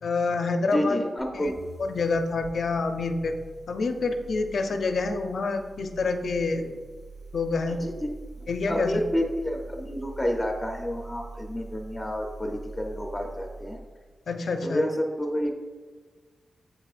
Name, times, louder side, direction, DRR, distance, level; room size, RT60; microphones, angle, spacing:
voice 1, 0.0-1.0 1.3-1.5 1.8-3.3 3.7-6.8 7.3-7.8 8.5-9.0 14.3-14.8, left 3 dB, 65° left, 6 dB, 0.5 m, -27 dB
voice 2, 0.7-1.6 7.7-8.1 8.7-13.8 14.6-15.5, equal, 10° left, 2 dB, 0.6 m, -29 dB
sound 1, 1.2-13.9, right 2 dB, 70° right, 1.9 m, -44 dB
7.6 x 5.9 x 2.5 m, 1.5 s
wide cardioid pair, 120°, 0 cm